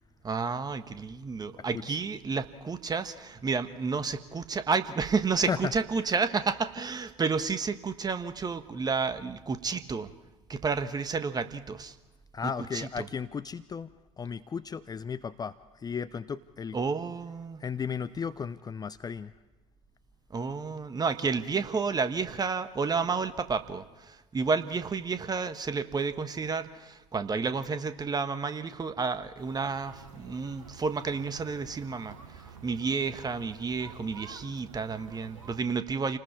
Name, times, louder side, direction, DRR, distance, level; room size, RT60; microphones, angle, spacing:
voice 1, 0.2-10.1 10.5-11.9 12.4-13.0 16.7-17.6 20.3-32.1 32.6-36.2, right 5 dB, 25° right, 10 dB, 1.4 m, -31 dB
voice 2, 1.5-2.0 5.5-5.7 12.3-13.9 14.2-16.8 17.6-19.3, left 6 dB, 25° left, 13 dB, 0.6 m, -35 dB
sound 1, 29.4-35.6, right 6 dB, 80° right, 1.6 m, -49 dB
29.5 x 20.0 x 4.7 m, 1.2 s
figure-of-eight pair, 65°, 17 cm